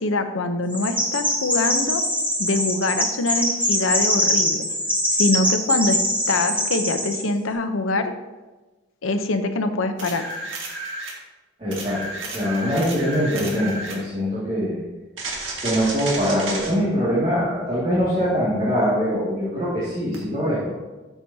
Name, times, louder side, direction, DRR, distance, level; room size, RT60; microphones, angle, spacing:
voice 1, 0.0-2.0 2.4-4.6 5.1-6.0 6.3-8.1 9.0-10.2, left 2 dB, 85° left, 7 dB, 0.8 m, -24 dB
Chirp tweet, 0.7-7.2, equal, 10° right, 1.7 m, -23 dB
sound 1, 10.0-11.2 11.7-14.0 15.2-16.7 20.1-20.2, right 2 dB, 70° right, 1.8 m, -32 dB
voice 2, 11.6-14.8 15.6-20.7, equal, 30° right, -8 dB, 2.2 m, -23 dB
12.5 x 6.9 x 2.8 m, 1.2 s
head